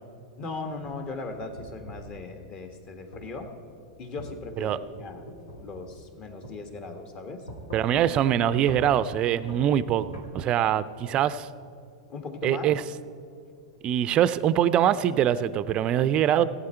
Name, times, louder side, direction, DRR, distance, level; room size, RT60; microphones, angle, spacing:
voice 1, 0.4-3.5 4.0-5.2 5.6-7.5 12.1-12.7, left 3 dB, 35° left, 6 dB, 1.5 m, -38 dB
sound 1, 0.7-2.1 3.1-3.3 4.2-6.2 6.4-6.6 7.5-8.3 8.7-8.9 9.5-10.3, equal, 80° left, 2.3 m, -42 dB
voice 2, 7.7-11.5 12.4-12.8 13.8-16.4, right 10 dB, 35° right, 16 dB, 0.4 m, -23 dB
16.5 x 8.6 x 4.4 m, 2.5 s
figure-of-eight pair, 95°, 3 cm